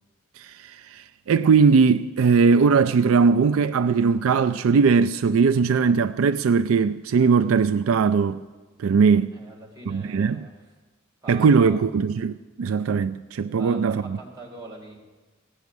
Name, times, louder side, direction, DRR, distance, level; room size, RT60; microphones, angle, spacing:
voice 1, 0.4-8.4 8.8-9.3 9.9-10.5 11.3-14.2, right 5 dB, 70° right, 0.4 m, -20 dB
voice 2, 9.3-10.5 11.2-11.8 13.6-15.0, right 2 dB, 20° right, 3.3 m, -42 dB
16.5 x 6.2 x 9.4 m
head